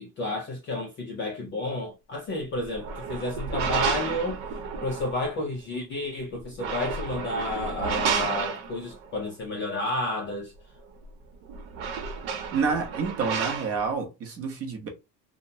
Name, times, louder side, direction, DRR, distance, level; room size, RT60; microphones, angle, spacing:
voice 1, 0.0-4.4 4.8-10.5, left 2 dB, 30° left, 0.3 m, -31 dB
sound 1, 2.6-5.3 6.4-9.1 11.0-11.1 11.4-13.9, right 6 dB, 70° right, 0.9 m, -31 dB
voice 2, 12.5-14.9, right 5 dB, 30° right, 0.7 m, -28 dB
2.8 x 2.1 x 2.6 m
cardioid pair, 160°, 47 cm